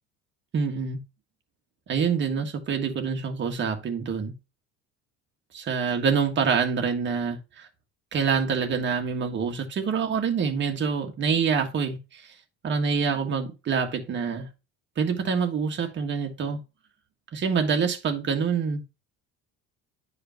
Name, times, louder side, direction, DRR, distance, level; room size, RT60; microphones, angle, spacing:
voice 1, 0.5-1.0 1.9-4.3 5.5-7.7 8.1-12.2 12.6-14.5 15.0-16.6 17.3-18.8, right 6 dB, 35° right, 1.6 m, -26 dB
10.5 x 4.9 x 2.9 m
cardioid pair, 135°, 31 cm